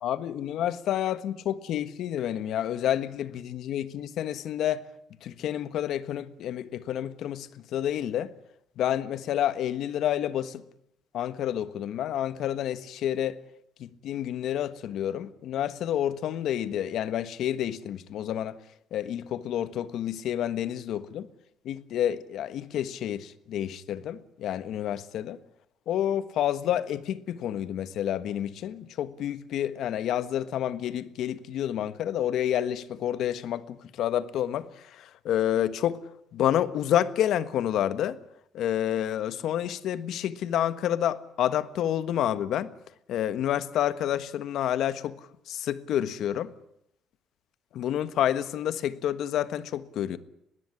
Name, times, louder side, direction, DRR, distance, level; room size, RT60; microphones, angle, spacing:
voice 1, 0.0-4.8 5.2-8.3 8.8-10.6 11.1-13.4 13.8-18.6 18.9-21.3 21.6-25.4 25.9-34.7 34.9-36.0 36.3-38.2 38.5-42.7 43.1-45.2 45.5-46.5 47.7-50.2, left 11 dB, 70° left, 1.4 m, -29 dB
21.5 x 16.0 x 9.9 m
cardioid pair, 140°, 0 cm